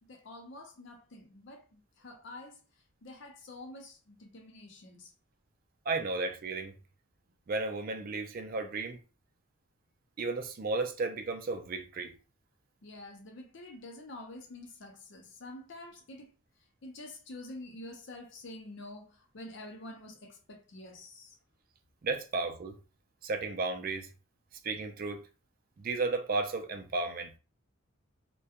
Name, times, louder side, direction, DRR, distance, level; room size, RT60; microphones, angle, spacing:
voice 1, 0.1-2.6 3.0-5.1 12.8-16.3 16.8-21.4, left 2 dB, 60° left, 0.6 m, -47 dB
voice 2, 5.9-6.7 7.5-9.0 10.2-12.2 22.0-22.8 23.2-24.1 24.6-25.2 25.8-27.3, right 3 dB, 45° right, 0.4 m, -33 dB
2.3 x 2.2 x 2.7 m
head